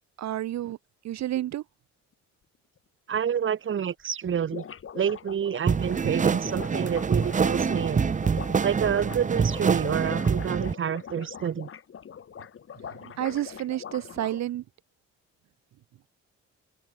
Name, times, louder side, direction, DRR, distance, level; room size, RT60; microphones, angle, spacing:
voice 1, 0.2-0.8 1.0-1.6 6.0-6.1 13.0-14.6, right 13 dB, 65° right, 0.8 m, -30 dB
sound 1, 3.1-3.2 3.5-3.6 3.8-3.9 4.1-14.4, left 8 dB, 45° left, 1.6 m, -42 dB
voice 2, 3.1-4.7 4.9-8.1 8.6-11.7, right 8 dB, 40° right, 1.1 m, -28 dB
sound 2, 5.7-10.7, right 6 dB, 25° right, 0.7 m, -26 dB
cardioid pair, 90°, 30 cm